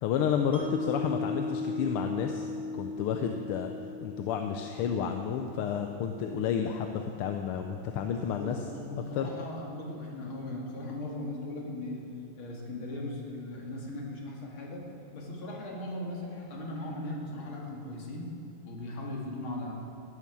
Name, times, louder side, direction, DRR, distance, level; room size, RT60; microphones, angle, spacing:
voice 1, 0.0-3.7 4.0-8.6 9.2-9.3, left 8 dB, 90° left, 5 dB, 1.7 m, -31 dB
Mallet percussion, 0.5-6.7, left 3 dB, 40° right, 1.4 m, -38 dB
voice 2, 8.3-12.1 12.4-19.7, left 1 dB, 70° left, -1 dB, 3.0 m, -38 dB
15.0 x 11.0 x 6.2 m, 2.9 s
omnidirectional pair, 2.3 m